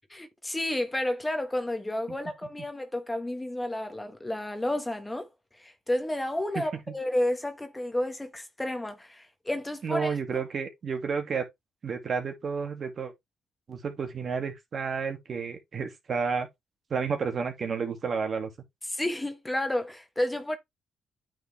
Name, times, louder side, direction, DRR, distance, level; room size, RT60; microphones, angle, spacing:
voice 1, 0.1-10.2 18.8-20.6, left 1 dB, 10° left, 1.4 m, -31 dB
voice 2, 9.8-11.5 11.8-13.1 13.7-16.5 16.9-18.5, right 5 dB, 50° right, 2.2 m, -31 dB
8.9 x 4.5 x 3.4 m
cardioid pair, 90°, 0 cm